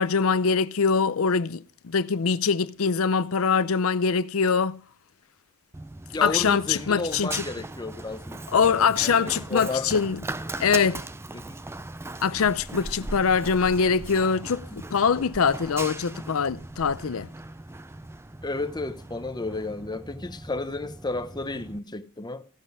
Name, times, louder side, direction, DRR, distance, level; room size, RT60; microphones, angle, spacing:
voice 1, 0.0-4.8 6.2-7.4 8.5-10.2 10.6-11.0 12.2-17.3, left 5 dB, 70° left, 0.6 m, -23 dB
Run, 5.7-21.8, right 2 dB, 10° right, 0.4 m, -39 dB
voice 2, 6.1-10.0 11.3-11.6 18.4-22.5, left 2 dB, 20° left, 0.9 m, -33 dB
15.5 x 7.8 x 4.9 m
head